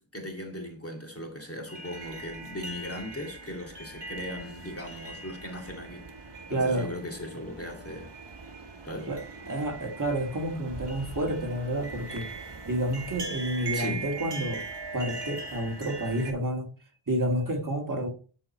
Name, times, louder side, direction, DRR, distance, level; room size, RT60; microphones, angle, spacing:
voice 1, 0.0-6.1 6.5-8.1 8.8-9.1 13.7-14.1, left 1 dB, 30° left, 2.3 m, -38 dB
sound 1, 1.7-16.3, right 4 dB, 55° right, 1.5 m, -40 dB
voice 2, 6.5-6.9 9.1-12.3 12.6-14.6 14.9-16.7 17.1-18.1, right 1 dB, 40° right, 1.9 m, -29 dB
12.0 x 4.5 x 4.2 m
wide cardioid pair, 75°, 50 cm